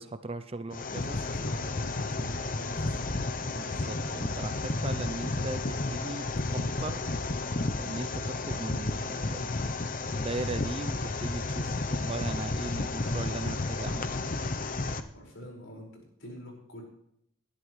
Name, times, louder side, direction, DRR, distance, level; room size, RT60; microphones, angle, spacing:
voice 1, 0.0-1.2 3.6-6.3 6.5-7.0 7.8-14.2, right 2 dB, 25° right, 10 dB, 0.5 m, -38 dB
sound 1, 0.7-15.0, left 2 dB, 40° left, 0.7 m, -32 dB
voice 2, 0.9-3.3 15.1-16.8, equal, 65° left, -1 dB, 5.3 m, -46 dB
19.5 x 11.5 x 3.2 m, 0.72 s
head